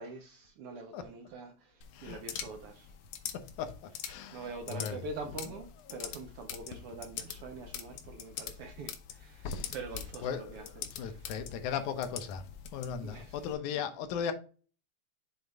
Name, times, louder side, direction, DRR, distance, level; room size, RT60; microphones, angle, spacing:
voice 1, 0.0-2.9 4.3-11.3 13.0-13.4 13.7-13.8, right 3 dB, 70° right, 1.4 m, -45 dB
sound 1, 1.8-13.5, left 9 dB, 70° left, 1.3 m, -44 dB
voice 2, 3.3-5.0 5.9-6.0 9.4-9.8 10.2-12.4 12.7-14.3, left 7 dB, 90° left, 2.3 m, -37 dB
7.1 x 3.9 x 3.4 m
omnidirectional pair, 3.3 m